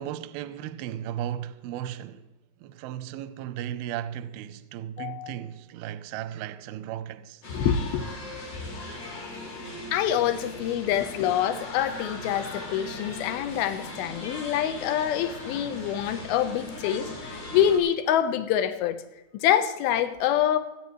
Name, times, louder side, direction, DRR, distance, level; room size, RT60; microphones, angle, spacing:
voice 1, 0.0-2.3 2.6-7.4, right 11 dB, 80° right, 2.3 m, -35 dB
voice 2, 5.0-5.4 7.5-8.0 9.9-19.0 19.3-20.6, left 10 dB, 75° left, 2.6 m, -26 dB
sound 1, 7.4-17.8, left 2 dB, 55° left, 5.1 m, -39 dB
27.0 x 9.9 x 3.1 m
omnidirectional pair, 5.0 m